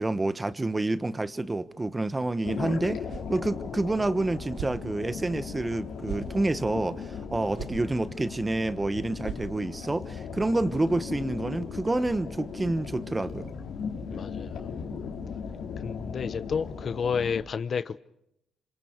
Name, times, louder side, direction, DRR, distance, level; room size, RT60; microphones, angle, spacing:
voice 1, 0.0-3.0 3.3-13.5, right 2 dB, 20° right, 1.2 m, -28 dB
sound 1, 2.4-17.4, left 6 dB, 75° left, 4.6 m, -37 dB
sound 2, 3.1-3.4 3.8-3.9 4.5-4.8 5.3-5.4 6.0-6.3 6.9-7.0 7.5-7.8 8.2-8.3 8.6-8.7 9.2-9.8, right 7 dB, 80° right, 3.2 m, -38 dB
voice 2, 14.1-14.7 15.8-18.0, left 6 dB, 50° left, 0.8 m, -31 dB
28.0 x 26.5 x 4.7 m
cardioid pair, 90°, 0 cm